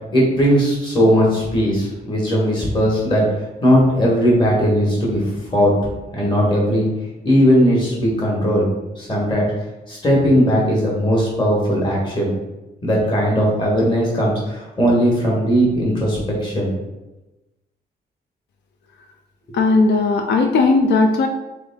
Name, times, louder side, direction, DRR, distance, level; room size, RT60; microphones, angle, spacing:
voice 1, 0.1-5.7 6.1-6.9 7.2-9.5 9.9-12.3 12.8-16.7 19.5-19.6, equal, 25° left, -4 dB, 1.4 m, -18 dB
voice 2, 19.5-21.3, left 3 dB, 85° left, 4 dB, 0.5 m, -16 dB
3.8 x 3.6 x 3.6 m, 1.0 s
wide cardioid pair, 175°, 17 cm